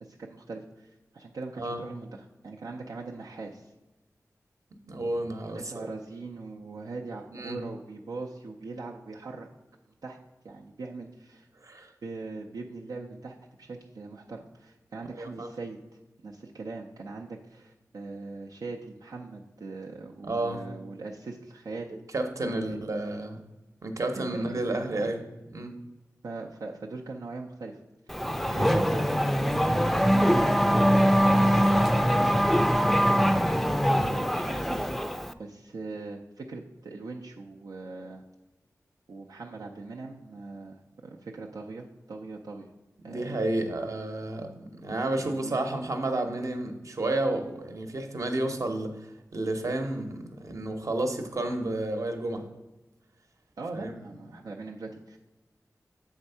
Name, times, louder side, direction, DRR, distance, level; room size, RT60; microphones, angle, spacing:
voice 1, 0.0-3.7 5.5-9.5 10.0-10.2 10.4-11.5 12.0-15.8 16.2-22.0 22.5-22.8 24.2-25.1 26.2-27.8 28.4-29.1 29.6-30.5 30.9-31.8 32.0-32.3 32.6-35.0 35.4-38.2 39.1-42.7 43.0-43.4 45.2-45.6 53.6-55.2, right 3 dB, 90° right, -1 dB, 0.5 m, -40 dB
voice 2, 4.9-5.9 7.3-7.6 11.6-11.9 15.2-15.5 20.2-20.6 22.1-23.4 23.8-25.2 25.5-25.7 43.0-44.5 44.8-49.0 49.3-52.4 53.7-54.0, right 2 dB, 60° right, 5 dB, 0.9 m, -31 dB
Race car auto racing / Accelerating revving vroom, 28.1-35.3, equal, ahead, 0.4 m, -23 dB
7.3 x 3.5 x 5.5 m, 1.1 s
wide cardioid pair, 65°, 6 cm